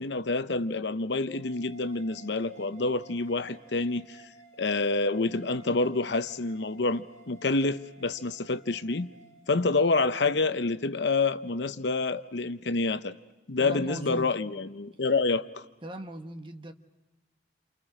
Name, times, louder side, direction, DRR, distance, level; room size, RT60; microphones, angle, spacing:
voice 1, 0.0-4.2 4.6-9.1 9.5-13.1 13.5-15.6, left 3 dB, 70° left, 0.8 m, -28 dB
sound 1, 1.3-10.4, right 5 dB, 20° left, 5.6 m, -55 dB
voice 2, 13.6-14.3 15.8-16.7, right 1 dB, 25° right, 1.2 m, -39 dB
29.0 x 28.5 x 5.0 m
head